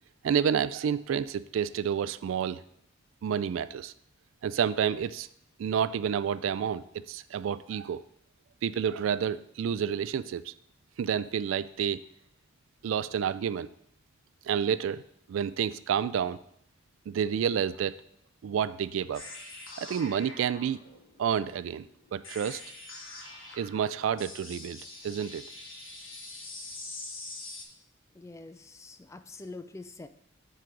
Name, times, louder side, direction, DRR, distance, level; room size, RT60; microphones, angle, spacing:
voice 1, 0.2-2.6 3.2-3.9 4.4-5.3 5.6-8.0 8.6-10.5 11.0-12.0 12.8-13.7 14.5-15.0 15.3-16.4 17.1-18.0 18.4-19.2 19.8-20.8 21.2-21.9 22.1-22.6 23.6-25.4, right 8 dB, 80° right, 15 dB, 0.3 m, -29 dB
sound 1, 19.1-27.6, left 2 dB, 80° left, 1.4 m, -44 dB
voice 2, 28.1-30.1, left 3 dB, 15° left, 10 dB, 0.3 m, -45 dB
7.5 x 3.9 x 4.6 m, 0.72 s
head